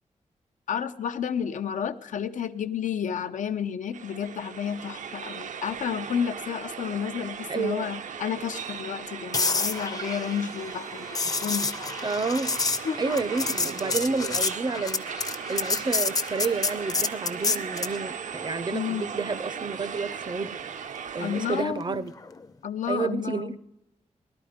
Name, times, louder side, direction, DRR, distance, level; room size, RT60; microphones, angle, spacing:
voice 1, 0.7-11.1 11.4-11.7 12.8-13.0 18.7-19.1 21.2-22.0 22.6-23.6, left 8 dB, 90° left, 10 dB, 0.7 m, -31 dB
sound 1, 3.9-21.6, right 7 dB, 80° right, 0.6 m, -37 dB
voice 2, 7.5-7.9 12.0-12.6 13.0-20.6 21.1-22.1 22.9-23.6, right 4 dB, 35° right, 16 dB, 0.5 m, -30 dB
sound 2, 9.3-18.0 22.2-22.4, left 4 dB, 30° left, 0.5 m, -29 dB
18.5 x 12.0 x 5.1 m, 0.88 s
wide cardioid pair, 160°, 13 cm